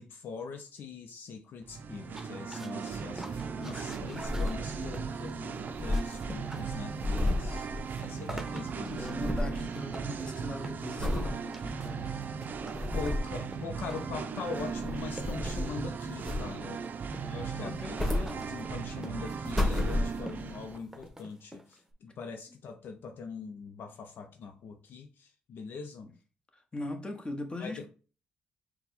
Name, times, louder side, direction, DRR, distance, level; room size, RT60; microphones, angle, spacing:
voice 1, 0.0-7.7 8.0-9.1 12.9-16.8 17.2-26.1 27.6-27.9, left 5 dB, 65° left, 0.5 m, -42 dB
Singing, 1.6-20.8, right 6 dB, 55° right, 0.5 m, -38 dB
sound 1, 2.0-21.9, right 1 dB, 10° right, 0.9 m, -49 dB
sound 2, 3.9-5.1 5.3-5.4 5.6-8.4 8.6-9.7 10.1-10.4 11.0-11.4 11.9-12.0 12.5-13.4 14.4-15.8 16.2-16.8 17.6-18.9 19.3-20.5 21.1-21.2, left 1 dB, 5° left, 1.6 m, -32 dB
voice 2, 8.9-12.2 17.6-18.4 26.7-27.9, left 1 dB, 25° left, 1.1 m, -40 dB
4.3 x 2.2 x 4.1 m
supercardioid pair, 60°, 4 cm